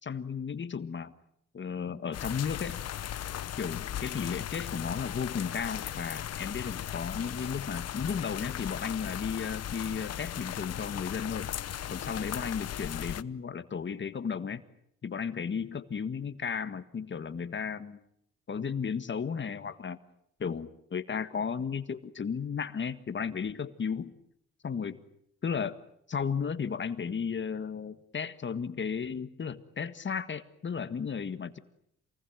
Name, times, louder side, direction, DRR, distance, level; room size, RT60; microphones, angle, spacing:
voice 1, 0.0-1.1 1.5-2.8 3.6-11.5 11.9-14.6 15.0-18.0 18.5-20.0 20.4-24.1 24.6-25.0 25.4-25.8 26.1-31.6, left 6 dB, 40° left, 11 dB, 1.7 m, -34 dB
sound 1, 2.1-13.2, left 11 dB, 55° left, 0.9 m, -37 dB
28.0 x 20.0 x 9.1 m, 0.73 s
cardioid pair, 90°, 30 cm